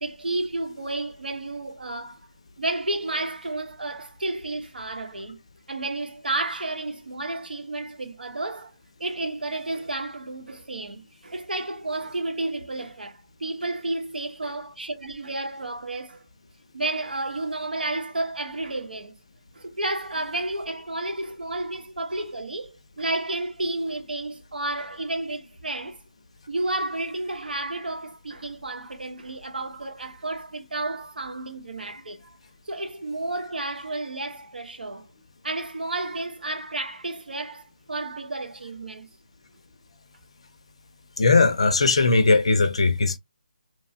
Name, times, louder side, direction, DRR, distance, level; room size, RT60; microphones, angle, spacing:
voice 1, 0.0-2.2 2.6-5.4 5.7-8.7 9.0-16.2 16.7-19.1 19.5-26.0 26.5-32.4 32.7-35.1 35.4-39.1, right 2 dB, 80° right, 0.9 m, -31 dB
voice 2, 41.2-43.2, left 3 dB, 40° left, 0.5 m, -19 dB
3.0 x 2.1 x 2.6 m
hypercardioid pair, 175°, 5 cm